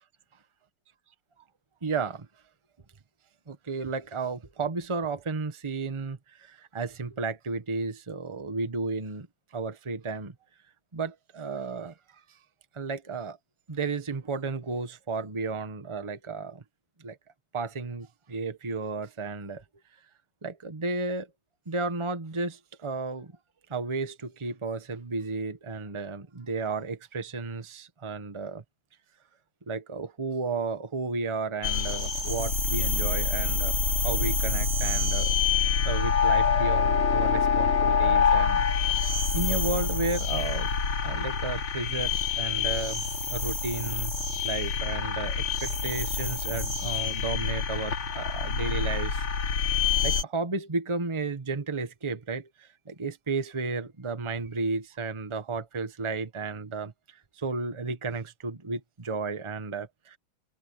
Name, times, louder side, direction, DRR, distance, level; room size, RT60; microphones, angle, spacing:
voice 1, 1.8-2.3 3.5-9.3 9.5-10.3 10.9-11.9 12.7-13.4 13.7-16.6 17.0-17.2 17.5-19.6 20.4-21.3 21.7-23.3 23.7-28.6 29.7-33.7 34.0-35.3 35.8-38.6 39.3-40.7 41.0-43.0 43.3-44.1 44.4-49.2 50.0-56.9 57.4-60.2, right 4 dB, 20° right, 1.1 m, -33 dB
sound 1, 31.6-50.2, left 5 dB, 85° left, 3.7 m, -26 dB
omnidirectional pair, 2.3 m